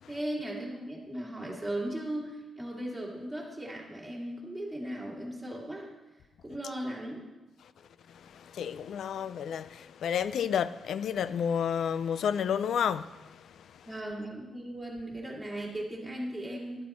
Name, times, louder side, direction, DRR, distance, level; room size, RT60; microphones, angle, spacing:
voice 1, 0.1-5.9 6.4-7.2 13.9-16.8, right 1 dB, 5° right, 2.4 m, -37 dB
voice 2, 8.1-13.9, left 8 dB, 75° left, 0.4 m, -31 dB
11.5 x 10.5 x 4.3 m
wide cardioid pair, 155°, 0 cm